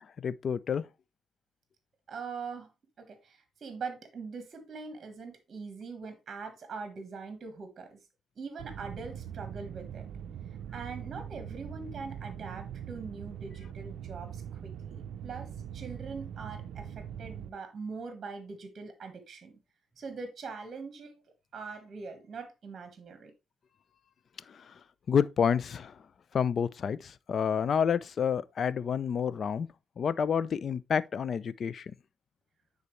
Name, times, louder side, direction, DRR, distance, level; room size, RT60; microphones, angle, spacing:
voice 1, 0.2-0.9 24.5-24.7 25.1-26.0 26.3-29.7 30.0-31.9, left 7 dB, 50° left, 0.5 m, -29 dB
voice 2, 2.1-2.7 3.0-8.0 8.4-10.1 10.7-19.6 20.0-21.2 21.5-23.3, right 4 dB, 45° right, 1.4 m, -42 dB
sound 1, 8.6-17.5, right 9 dB, 75° right, 0.5 m, -42 dB
9.5 x 4.0 x 3.2 m
cardioid pair, 90°, 0 cm